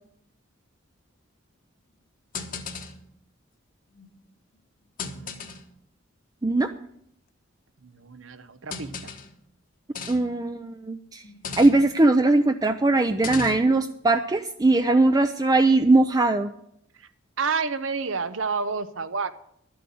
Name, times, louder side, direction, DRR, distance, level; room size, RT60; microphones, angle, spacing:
sound 1, 2.3-3.1 3.9-4.2 5.0-5.7 6.7-6.8 8.7-9.4 9.9-10.4 11.2-12.0 13.1-13.8, left 4 dB, 45° left, 1.2 m, -37 dB
voice 1, 5.0-5.6 7.8-9.1 17.4-19.3, right 5 dB, 85° right, 12 dB, 0.8 m, -30 dB
voice 2, 10.1-11.2 11.6-16.5, right 2 dB, 20° right, 7 dB, 0.5 m, -20 dB
12.0 x 7.7 x 7.0 m, 0.71 s
head